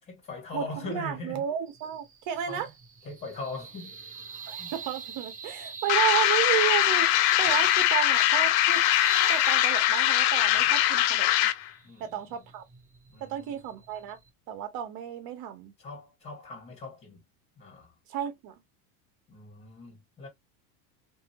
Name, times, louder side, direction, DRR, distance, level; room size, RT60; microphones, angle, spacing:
voice 1, 0.0-1.4 2.5-2.7 3.0-4.0 4.6-4.7 10.5-10.6 11.8-12.5 13.1-13.6 15.8-17.2 17.6-17.9 19.3-20.3, left 2 dB, 25° left, 1.8 m, -41 dB
voice 2, 0.5-2.7 4.5-8.8 9.3-11.3 12.0-12.6 13.2-14.2 14.5-15.7 18.1-18.5, right 11 dB, 50° right, 1.2 m, -32 dB
sound 1, 1.7-14.3, right 5 dB, 15° right, 0.8 m, -43 dB
sound 2, 5.9-11.7, left 14 dB, 50° left, 0.4 m, -22 dB
2.8 x 2.6 x 2.8 m
supercardioid pair, 125°, 44 cm